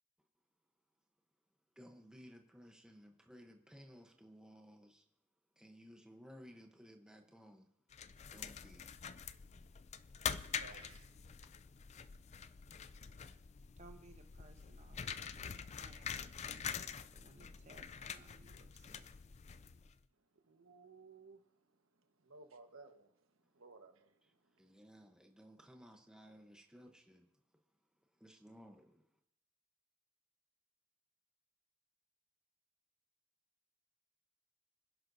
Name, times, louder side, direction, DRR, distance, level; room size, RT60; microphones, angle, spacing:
voice 1, 1.8-5.0 5.6-7.7 8.3-8.9 24.6-27.3 28.2-29.0, equal, 5° right, 0.9 m, -58 dB
sound 1, 7.9-20.0, left 7 dB, 35° left, 0.4 m, -46 dB
voice 2, 10.6-11.1 11.4-11.5 20.3-21.4 22.2-23.2 23.5-24.1, right 4 dB, 75° right, 1.3 m, -58 dB
voice 3, 13.8-16.1 16.4-19.1, right 3 dB, 35° right, 1.2 m, -62 dB
25.5 x 11.0 x 2.7 m
head